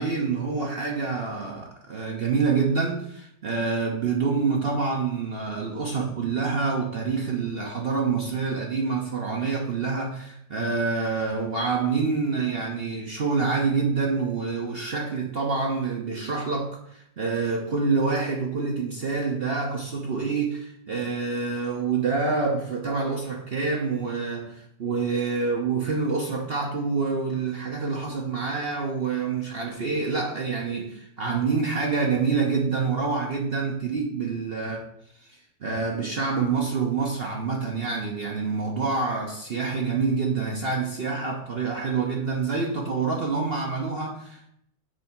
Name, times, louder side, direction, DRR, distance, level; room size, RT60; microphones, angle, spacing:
voice 1, 0.0-34.9 35.6-44.5, right 4 dB, 50° right, 0 dB, 0.7 m, -27 dB
7.6 x 2.7 x 5.7 m, 0.73 s
omnidirectional pair, 2.0 m